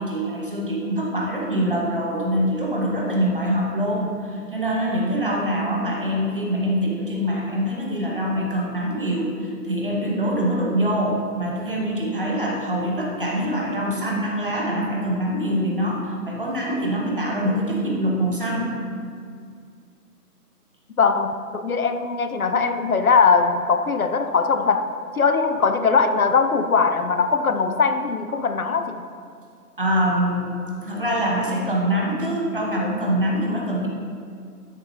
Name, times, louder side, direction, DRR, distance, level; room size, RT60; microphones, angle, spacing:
voice 1, 0.0-18.7 29.8-30.5 30.8-33.9, equal, 35° right, -2 dB, 1.1 m, -24 dB
voice 2, 21.0-24.8 25.2-29.0, left 5 dB, 65° left, 9 dB, 0.6 m, -20 dB
12.5 x 7.0 x 2.7 m, 2.3 s
hypercardioid pair, 180°, 48 cm